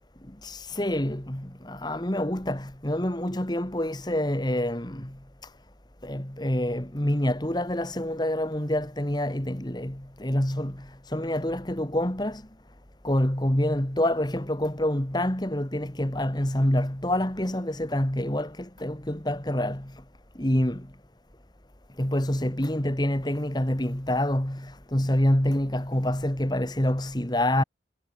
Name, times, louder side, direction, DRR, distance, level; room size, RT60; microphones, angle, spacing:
voice 1, 0.4-5.5 6.0-12.4 13.0-20.0 20.4-20.9 22.0-27.6, left 1 dB, 25° left, 2.1 m, -27 dB
head